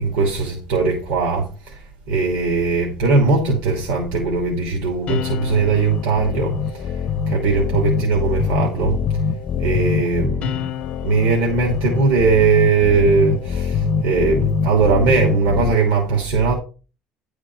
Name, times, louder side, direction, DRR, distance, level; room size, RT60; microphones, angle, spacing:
voice 1, 0.0-6.9 7.3-9.0 9.6-10.6 11.0-16.5, right 4 dB, 85° right, 2.8 m, -19 dB
sound 1, 5.1-15.7, left 6 dB, 45° left, 0.6 m, -24 dB
11.0 x 5.0 x 4.6 m
cardioid pair, 150°, 3 cm